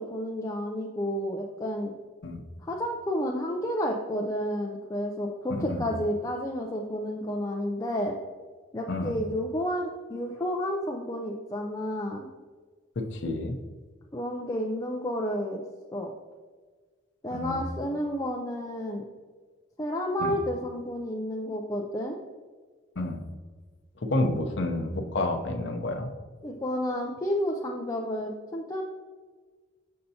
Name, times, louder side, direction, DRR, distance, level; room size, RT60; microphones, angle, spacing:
voice 1, 0.0-1.9 2.6-8.2 8.7-12.3 14.1-15.6 15.9-16.1 17.2-19.0 19.8-22.2 26.4-28.8, equal, 15° left, -1 dB, 0.3 m, -31 dB
voice 2, 5.5-5.8 8.9-9.2 13.1-13.6 17.3-17.6 20.2-20.3 23.0-23.2 24.0-26.1, left 2 dB, 65° left, 3 dB, 0.6 m, -29 dB
6.5 x 5.6 x 2.7 m, 1.5 s
head